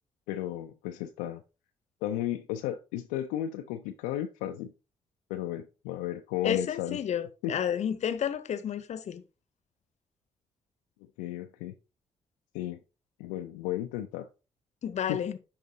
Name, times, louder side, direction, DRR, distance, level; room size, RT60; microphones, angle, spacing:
voice 1, 0.3-1.4 2.0-4.7 5.3-7.0 7.4-7.5 11.2-11.7 12.5-12.8 13.2-14.3 15.1-15.2, left 12 dB, 80° left, 0.4 m, -34 dB
voice 2, 6.4-9.2 14.8-15.4, left 9 dB, 55° left, 0.8 m, -31 dB
10.0 x 3.6 x 2.7 m
hypercardioid pair, 45°, 14 cm